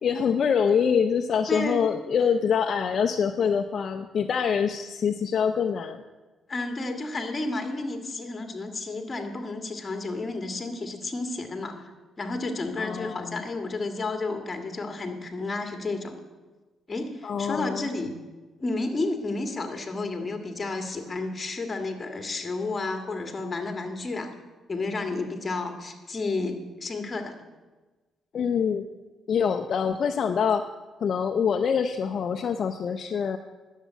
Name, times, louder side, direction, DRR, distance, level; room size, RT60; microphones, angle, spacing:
voice 1, 0.0-6.0 12.8-13.4 17.2-17.9 28.3-28.9 29.3-30.6 31.0-33.4, left 7 dB, 55° left, 7 dB, 0.6 m, -25 dB
voice 2, 1.5-1.8 6.5-11.9 12.2-16.1 16.9-18.1 18.6-24.3 24.7-27.4, left 3 dB, 30° left, 5 dB, 1.8 m, -31 dB
10.0 x 7.3 x 9.0 m, 1.2 s
cardioid pair, 90°, 0 cm